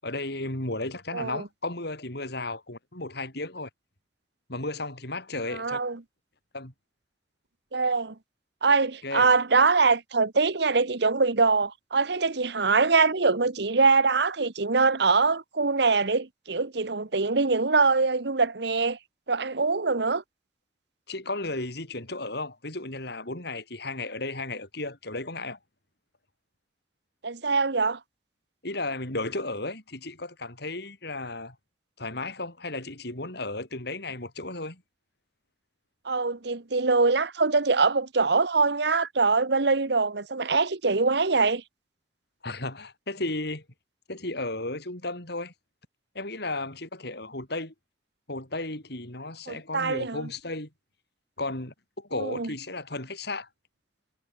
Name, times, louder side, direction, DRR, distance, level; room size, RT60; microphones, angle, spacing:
voice 1, 0.0-3.7 4.5-5.8 6.5-6.7 9.0-9.3 21.1-25.6 28.6-31.6 32.0-34.8 42.4-43.6 44.1-45.5 46.1-47.7 48.3-50.7 51.4-53.5, left 2 dB, 65° left, 6.8 m, -34 dB
voice 2, 1.1-1.4 5.5-6.0 7.7-8.1 8.6-19.0 19.3-20.2 27.2-28.0 36.0-41.6 49.5-50.2 52.2-52.5, right 4 dB, 65° right, 1.2 m, -23 dB
head